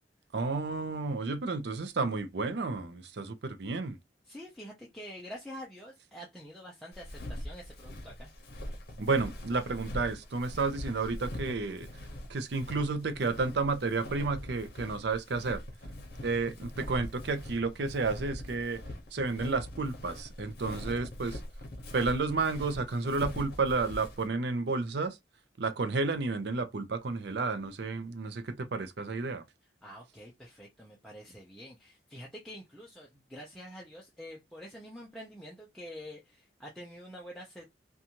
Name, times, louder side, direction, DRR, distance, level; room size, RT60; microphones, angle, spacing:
voice 1, 0.3-4.0 9.0-11.9 12.3-15.6 16.2-18.8 19.1-21.4 21.9-25.2 25.6-29.4, right 3 dB, 60° right, 0.5 m, -31 dB
voice 2, 4.2-8.3 29.8-37.7, equal, ahead, 0.5 m, -47 dB
Walk footsteps, 6.9-24.3, left 1 dB, 55° left, 0.8 m, -42 dB
2.6 x 2.3 x 2.8 m
head